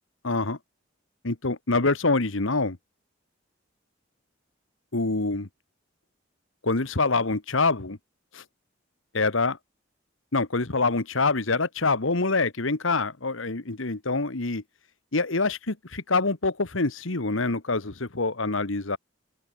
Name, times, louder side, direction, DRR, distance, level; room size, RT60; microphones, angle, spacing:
voice 1, 0.2-0.6 1.2-2.8 4.9-5.5 6.6-8.0 8.3-8.4 9.1-9.6 10.3-14.6 15.1-19.0, left 3 dB, 75° left, 1.6 m, -25 dB
open air
head